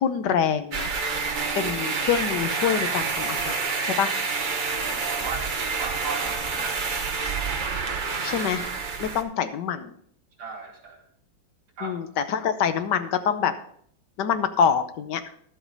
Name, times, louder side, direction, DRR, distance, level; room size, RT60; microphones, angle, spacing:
voice 1, 0.0-0.9 1.6-4.2 8.2-8.7 9.0-9.9 11.8-13.5 14.2-15.2, left 7 dB, 65° left, 10 dB, 1.3 m, -25 dB
sound 1, 0.7-9.2, right 4 dB, 60° right, 0.5 m, -28 dB
voice 2, 4.6-7.0 10.4-11.0 11.8-12.0, right 4 dB, 85° right, 1 dB, 3.2 m, -37 dB
11.5 x 8.0 x 4.0 m, 0.62 s
omnidirectional pair, 2.2 m